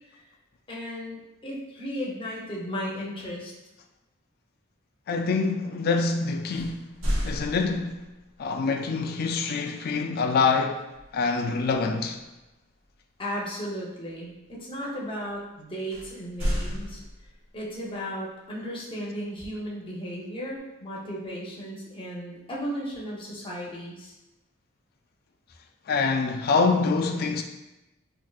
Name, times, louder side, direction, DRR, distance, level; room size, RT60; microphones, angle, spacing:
voice 1, 0.7-3.5 13.2-17.0 17.5-24.1, equal, 25° left, 0.7 m, -35 dB
voice 2, 5.1-6.9 7.2-8.0 8.4-10.9 11.1-12.2 25.9-27.4, left 4 dB, 45° left, 0.3 m, -25 dB
sound 1, 6.5-8.2 10.9-11.2 11.7-11.9 15.9-17.6, equal, 70° right, 0.9 m, -31 dB
4.5 x 2.5 x 2.3 m
head